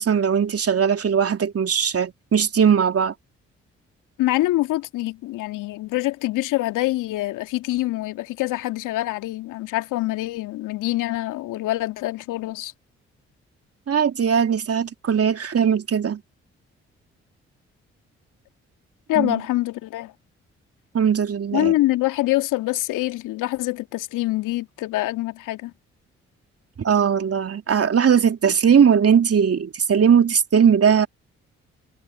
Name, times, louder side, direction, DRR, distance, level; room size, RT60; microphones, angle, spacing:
voice 1, 0.0-3.1 13.9-16.2 19.1-19.4 20.9-21.7 26.8-31.1, right 7 dB, 45° right, 2.9 m, -19 dB
voice 2, 4.2-12.7 19.1-20.1 21.5-25.7, left 17 dB, 70° left, 2.4 m, -25 dB
hypercardioid pair, 40°, 32 cm